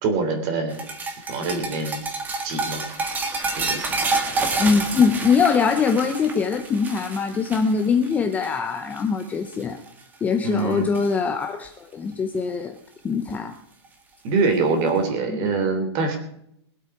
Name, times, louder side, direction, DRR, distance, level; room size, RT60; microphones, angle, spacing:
voice 1, 0.0-0.8 1.3-2.0 2.4-2.8 3.5-3.8 10.4-10.9 14.2-16.2, right 4 dB, 30° right, 6 dB, 3.2 m, -24 dB
sound 1, 0.7-9.2 9.5-9.9 10.3-11.1 12.5-12.6 13.9-14.0, right 3 dB, 10° right, 1.6 m, -29 dB
voice 2, 4.6-9.8 10.2-12.8 13.0-13.5 15.3-15.5, left 5 dB, 10° left, 6 dB, 0.7 m, -22 dB
22.0 x 8.3 x 4.9 m, 0.73 s
supercardioid pair, 170°, 15 cm